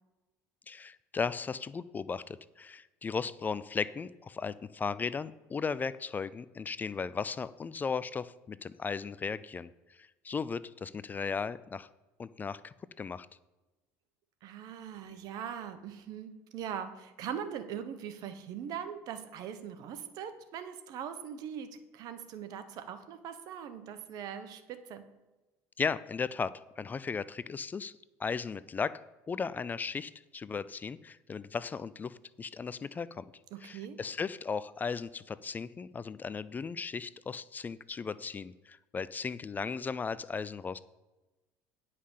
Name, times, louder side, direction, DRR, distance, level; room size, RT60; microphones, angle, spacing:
voice 1, 0.7-11.9 12.2-13.3 25.8-27.9 28.2-33.2 33.6-40.8, left 5 dB, 25° left, 17 dB, 0.4 m, -36 dB
voice 2, 14.4-25.1 33.5-34.0, right 8 dB, 60° right, 10 dB, 1.2 m, -41 dB
10.0 x 5.7 x 6.5 m, 1.1 s
supercardioid pair, 100°, 7 cm